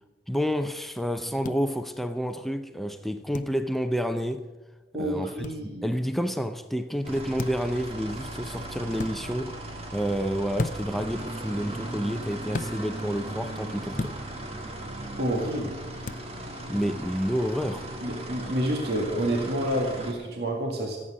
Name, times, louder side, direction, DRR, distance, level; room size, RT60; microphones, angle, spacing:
voice 1, 0.3-4.5 5.0-14.2 16.7-17.9, equal, ahead, 0.5 m, -29 dB
sound 1, 1.4-1.6 3.3-3.5 5.4-5.6 7.4-7.7 8.9-9.1 10.6-11.0 12.5-12.7 14.0-14.2 16.0-16.3, left 3 dB, 45° left, 0.6 m, -32 dB
voice 2, 4.9-5.9 15.2-15.8 18.0-21.0, right 1 dB, 60° right, 2.0 m, -28 dB
sound 2, 7.0-20.1, right 1 dB, 35° right, 1.6 m, -37 dB
15.0 x 8.7 x 6.3 m
head